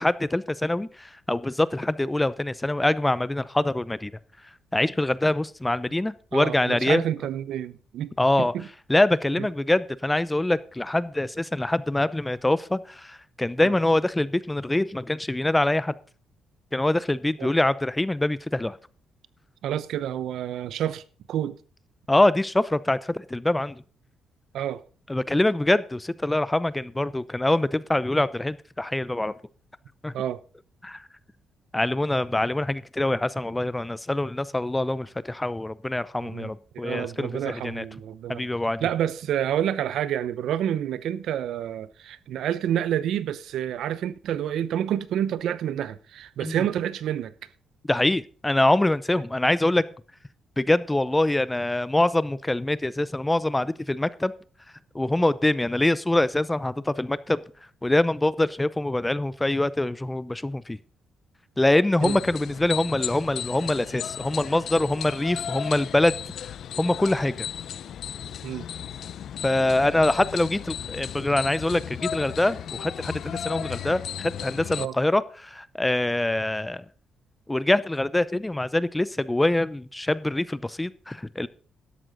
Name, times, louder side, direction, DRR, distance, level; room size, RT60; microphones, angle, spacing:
voice 1, 0.0-4.1 4.7-7.0 8.2-8.5 8.9-15.9 16.7-18.8 22.1-23.8 25.1-29.3 30.0-30.1 30.8-31.1 31.7-37.8 38.3-38.9 46.4-46.6 47.9-49.8 50.6-54.3 54.9-57.4 57.8-60.8 61.6-66.1 66.8-67.5 69.4-76.8 77.5-81.5, left 1 dB, 10° left, 0.6 m, -24 dB
voice 2, 6.3-8.1 8.4-8.7 9.4-9.5 13.6-13.7 17.4-17.5 19.6-21.0 21.3-21.6 24.5-24.8 30.1-30.4 36.2-36.5 36.8-38.4 38.8-47.3 62.0-62.2 68.4-68.7 74.8-74.9, right 10 dB, 75° right, 0.7 m, -28 dB
sound 1, 62.0-74.9, left 9 dB, 65° left, 0.6 m, -35 dB
12.5 x 11.0 x 4.0 m
cardioid pair, 90°, 0 cm